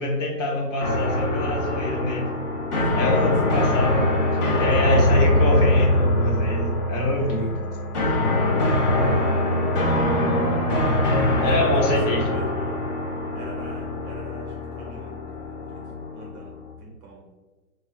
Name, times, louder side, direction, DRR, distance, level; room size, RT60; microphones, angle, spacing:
voice 1, 0.0-2.3 3.0-4.1 4.5-7.5 11.4-12.4, left 1 dB, 55° left, -1 dB, 1.1 m, -25 dB
sound 1, 0.8-16.7, left 1 dB, 30° left, 0.5 m, -23 dB
voice 2, 2.7-3.8 8.9-9.4 11.4-12.8 13.3-17.2, right 2 dB, 30° right, -2 dB, 0.6 m, -41 dB
3.7 x 2.2 x 3.1 m, 1.3 s
hypercardioid pair, 135°, 45 cm